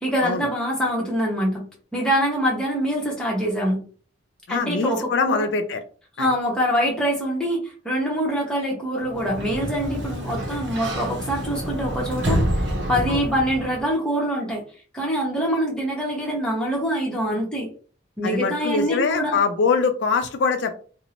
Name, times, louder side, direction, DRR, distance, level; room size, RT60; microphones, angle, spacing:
voice 1, 0.0-1.7 1.9-3.8 4.5-5.4 6.2-12.4 12.9-14.6 14.9-17.7 18.2-19.4, equal, 5° left, -3 dB, 0.8 m, -24 dB
voice 2, 4.5-5.8 6.2-6.3 13.1-13.2 18.2-20.8, left 5 dB, 65° left, 6 dB, 0.4 m, -23 dB
Sliding door, 9.0-13.9, equal, 75° right, 0.7 m, -27 dB
2.5 x 2.0 x 2.9 m, 0.41 s
head